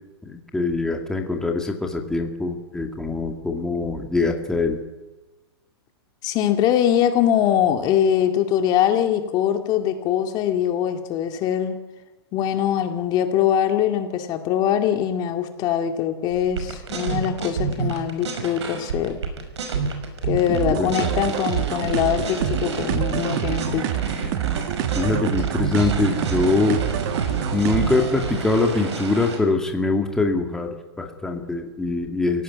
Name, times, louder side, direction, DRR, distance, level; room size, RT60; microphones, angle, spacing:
voice 1, 0.2-4.8 20.5-21.2 25.0-26.8 27.5-32.4, left 3 dB, 5° left, 3 dB, 2.0 m, -23 dB
voice 2, 6.2-11.8 12.3-19.2 20.2-23.9, left 10 dB, 30° left, 6 dB, 2.3 m, -22 dB
sound 1, 16.3-29.4, right 5 dB, 85° right, 5.9 m, -29 dB
sound 2, 20.5-28.1, right 13 dB, 45° right, 1.2 m, -27 dB
26.5 x 17.0 x 9.7 m, 1.2 s
hypercardioid pair, 155°, 14 cm